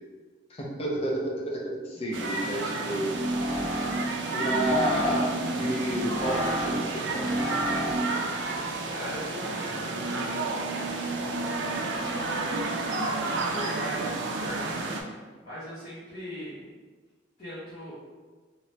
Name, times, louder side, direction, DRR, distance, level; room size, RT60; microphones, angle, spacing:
voice 1, 0.5-3.1 4.3-7.3, equal, 30° left, -2 dB, 0.5 m, -30 dB
sound 1, 2.1-15.0, right 3 dB, 75° right, 0.4 m, -31 dB
sound 2, 3.0-8.3, right 1 dB, 40° right, 0.7 m, -31 dB
voice 2, 8.5-10.6 11.9-12.6 12.9-14.8 15.4-16.6 17.4-17.9, equal, 55° left, -14 dB, 1.1 m, -40 dB
3.2 x 2.9 x 2.7 m, 1.4 s
head